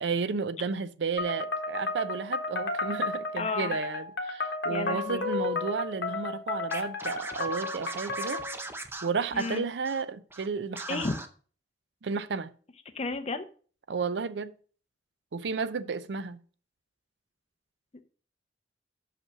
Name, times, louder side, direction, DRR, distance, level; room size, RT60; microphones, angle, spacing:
voice 1, 0.0-8.4 9.0-11.1 12.0-12.5 13.9-14.5 15.3-16.4, right 5 dB, 70° right, 0.5 m, -32 dB
sound 1, 1.2-8.6, left 3 dB, 60° left, 1.1 m, -33 dB
voice 2, 3.4-3.8 4.7-5.3 9.3-9.6 10.9-11.2 12.9-13.4, left 3 dB, 35° left, 0.7 m, -32 dB
Scratching (performance technique), 6.7-10.0 10.3-10.5 10.7-11.3, right 2 dB, 15° right, 0.6 m, -40 dB
6.0 x 5.4 x 6.0 m
head